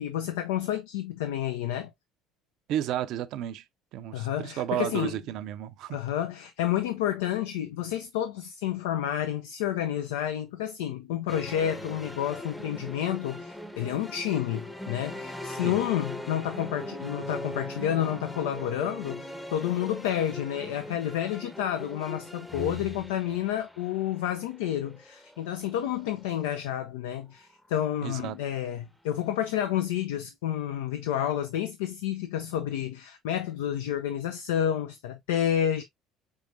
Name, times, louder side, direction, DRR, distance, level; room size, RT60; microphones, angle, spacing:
voice 1, 0.0-1.9 4.1-5.2 5.9-35.8, left 11 dB, 75° left, 0.4 m, -30 dB
voice 2, 2.7-3.6 3.9-6.0 15.6-15.8 28.0-28.4, right 12 dB, 60° right, 0.4 m, -32 dB
sound 1, 11.3-26.6, left 1 dB, 5° left, 0.7 m, -40 dB
4.7 x 3.3 x 2.5 m
hypercardioid pair, 60°, 0 cm